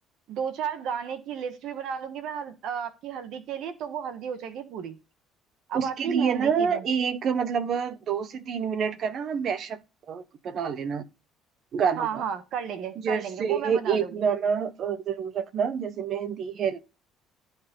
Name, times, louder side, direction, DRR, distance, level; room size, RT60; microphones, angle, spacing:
voice 1, 0.3-5.0 5.7-6.8 12.0-14.1, right 7 dB, 60° right, 1.5 m, -33 dB
voice 2, 5.7-9.8 10.1-11.0 11.7-12.2 13.0-16.8, right 7 dB, 45° right, 1.1 m, -27 dB
15.0 x 5.6 x 3.8 m
cardioid pair, 135°, 0 cm